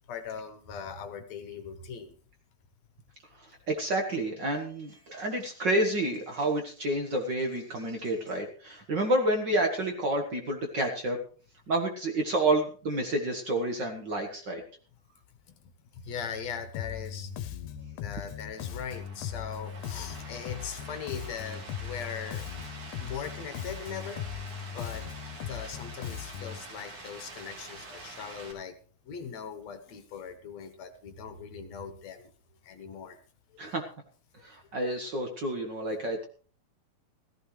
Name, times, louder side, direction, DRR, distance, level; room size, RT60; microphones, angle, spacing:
voice 1, 0.1-2.2 15.5-17.3 18.0-22.5 23.0-24.3 24.7-25.1 25.5-28.8 29.1-32.3 32.6-33.2 34.4-34.5, left 7 dB, 65° left, 8 dB, 2.3 m, -40 dB
voice 2, 3.3-11.2 11.7-14.6 33.6-33.9 34.4-36.3, right 1 dB, 45° right, 3 dB, 1.7 m, -29 dB
Bass guitar, 16.7-26.6, left 9 dB, 85° left, 2.3 m, -39 dB
sound 1, 18.5-28.5, right 3 dB, 80° right, 4.8 m, -46 dB
15.5 x 15.0 x 3.2 m, 0.42 s
omnidirectional pair, 3.4 m